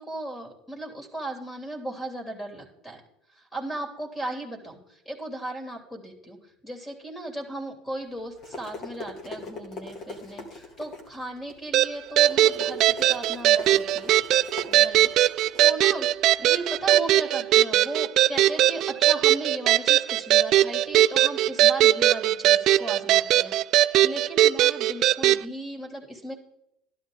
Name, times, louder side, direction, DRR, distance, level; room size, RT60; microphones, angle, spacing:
voice 1, 0.0-3.0 3.3-6.4 6.6-14.4 14.7-15.1 15.6-16.1 16.4-26.3, right 1 dB, 15° left, 2 dB, 3.2 m, -36 dB
sound 1, 8.1-16.9, left 2 dB, 45° left, 2.8 m, -42 dB
sound 2, 11.7-25.4, right 13 dB, 55° right, 0.4 m, -20 dB
12.0 x 11.0 x 4.0 m, 0.81 s
supercardioid pair, 105°, 0 cm